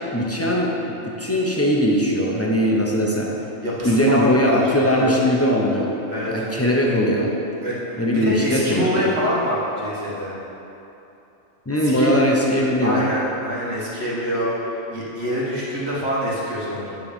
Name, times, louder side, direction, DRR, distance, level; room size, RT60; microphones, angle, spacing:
voice 1, 0.1-0.8 1.0-3.3 3.8-5.9 6.3-7.3 8.0-9.2 11.7-13.0, equal, 20° left, -3 dB, 0.4 m, -20 dB
voice 2, 3.6-5.1 6.1-6.3 7.6-10.3 11.8-12.1 12.8-17.0, equal, 50° right, -6 dB, 1.8 m, -25 dB
9.7 x 3.8 x 5.2 m, 2.9 s
omnidirectional pair, 1.4 m